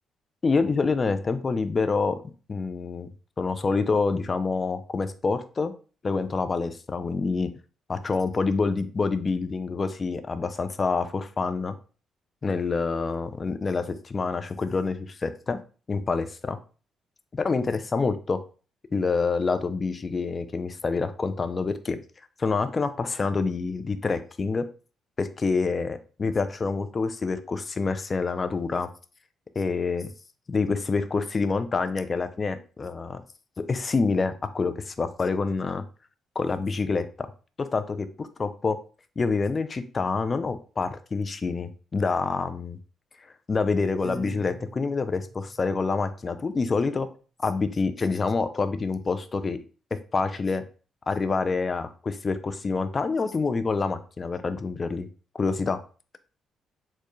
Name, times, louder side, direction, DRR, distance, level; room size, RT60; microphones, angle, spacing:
voice 1, 0.4-2.2 2.5-3.1 3.4-5.7 6.0-7.5 7.9-11.7 12.4-15.6 15.9-16.6 17.3-18.4 18.9-22.0 22.4-24.6 25.2-28.9 29.6-30.1 30.5-33.2 33.7-35.8 36.4-37.1 37.6-38.8 39.2-42.8 43.5-47.1 47.4-49.6 50.1-50.6 51.1-55.1 55.4-55.8, left 4 dB, 35° left, 10 dB, 0.4 m, -27 dB
Piano, 44.0-46.2, right 2 dB, 80° right, 1.5 m, -43 dB
4.4 x 2.2 x 3.1 m, 0.37 s
cardioid pair, 90°, 0 cm